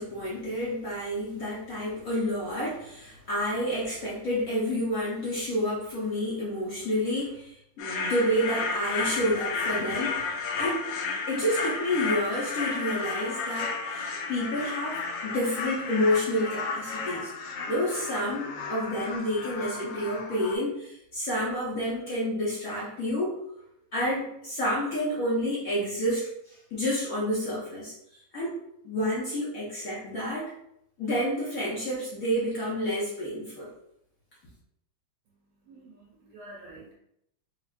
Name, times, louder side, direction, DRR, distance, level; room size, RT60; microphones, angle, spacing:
voice 1, 0.0-10.2 10.6-10.8 11.3-17.3 17.7-23.4 23.9-27.9 28.3-28.6 28.8-30.5 31.0-33.7, equal, 55° left, -6 dB, 1.1 m, -29 dB
sound 1, 7.8-20.6, left 4 dB, 75° left, 1.2 m, -33 dB
voice 2, 35.3-36.9, right 1 dB, 75° right, -5 dB, 2.2 m, -49 dB
5.2 x 2.4 x 2.4 m, 0.76 s
omnidirectional pair, 2.3 m